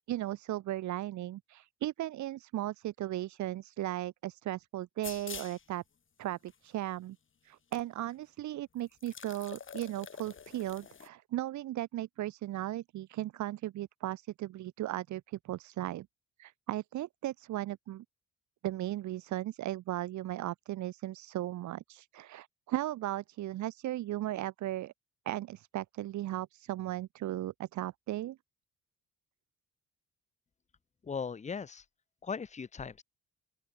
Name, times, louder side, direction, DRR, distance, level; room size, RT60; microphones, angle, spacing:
voice 1, 0.1-5.8 6.2-7.2 7.4-16.1 16.4-18.0 18.6-24.9 25.3-28.4, right 14 dB, 70° right, 0.9 m, -36 dB
sound 1, 5.0-5.6 6.5-6.6 7.7-7.8 8.1-8.2 8.9-11.1, left 7 dB, 40° left, 2.5 m, -46 dB
voice 2, 31.0-31.8 32.2-33.0, left 6 dB, 25° left, 0.8 m, -38 dB
open air
cardioid pair, 90°, 30 cm